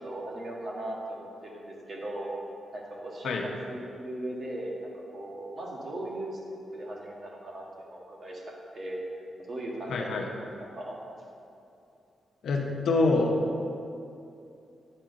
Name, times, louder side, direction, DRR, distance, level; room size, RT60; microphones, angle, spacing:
voice 1, 0.0-2.3 2.7-3.4 3.7-4.7 5.1-6.4 6.7-9.0 9.5-10.4 10.7-11.0, right 1 dB, 50° right, -2 dB, 1.6 m, -38 dB
voice 2, 9.9-10.3 12.4-13.4, left 3 dB, 80° left, 1 dB, 0.8 m, -25 dB
8.8 x 4.5 x 5.1 m, 2.6 s
cardioid pair, 95°, 0 cm